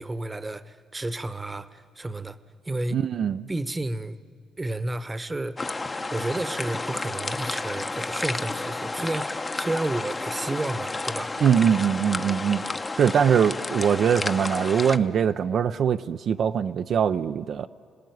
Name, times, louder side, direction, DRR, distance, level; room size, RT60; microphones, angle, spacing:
voice 1, 0.0-2.4 2.6-3.0 3.5-4.2 4.6-5.6 6.1-11.3, right 2 dB, 20° right, 1.0 m, -31 dB
voice 2, 2.9-3.4 11.4-12.6 13.0-17.7, right 8 dB, 60° right, 0.5 m, -22 dB
sound 1, 5.6-15.0, left 3 dB, 25° left, 0.9 m, -31 dB
27.0 x 18.5 x 9.4 m
cardioid pair, 90°, 0 cm